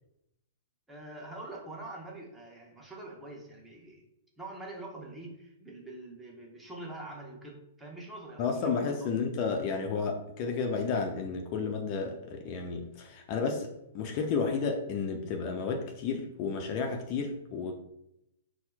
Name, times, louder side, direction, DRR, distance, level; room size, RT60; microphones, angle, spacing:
voice 1, 0.9-4.1 4.4-9.1, right 2 dB, 5° right, -2 dB, 0.7 m, -45 dB
voice 2, 8.4-17.7, left 5 dB, 40° left, 3 dB, 0.4 m, -32 dB
4.2 x 2.0 x 2.2 m, 0.84 s
figure-of-eight pair, 110°, 0 cm